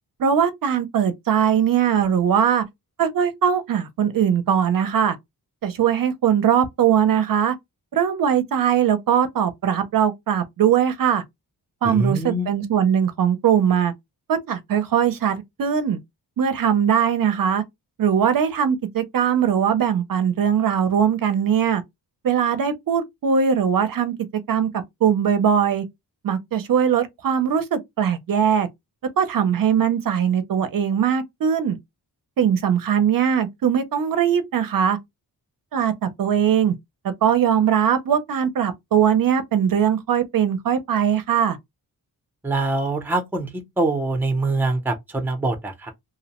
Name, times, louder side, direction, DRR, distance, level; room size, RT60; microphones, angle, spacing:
voice 1, 0.2-2.6 3.0-5.2 5.6-7.5 7.9-11.2 11.8-13.9 14.3-16.0 16.4-17.6 18.0-21.8 22.2-24.1 24.5-24.7 25.0-25.8 26.2-28.7 29.2-31.8 32.4-35.0 35.7-36.7 37.0-41.6, right 8 dB, 60° right, 0.5 m, -20 dB
voice 2, 11.8-12.5 42.4-43.5 43.8-45.9, right 2 dB, 5° right, 0.5 m, -24 dB
2.6 x 2.0 x 2.8 m
wide cardioid pair, 165°, 39 cm